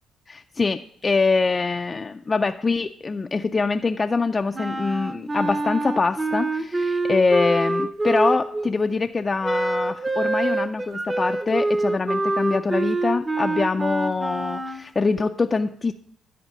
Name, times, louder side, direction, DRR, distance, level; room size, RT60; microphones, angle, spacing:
voice 1, 0.3-15.9, left 4 dB, 30° left, 6 dB, 0.4 m, -24 dB
Wind instrument woodwind instrument, 4.5-8.7 9.4-14.8, right 2 dB, 25° right, 0.7 m, -25 dB
10.0 x 4.4 x 6.6 m, 0.67 s
cardioid pair, 90°, 0 cm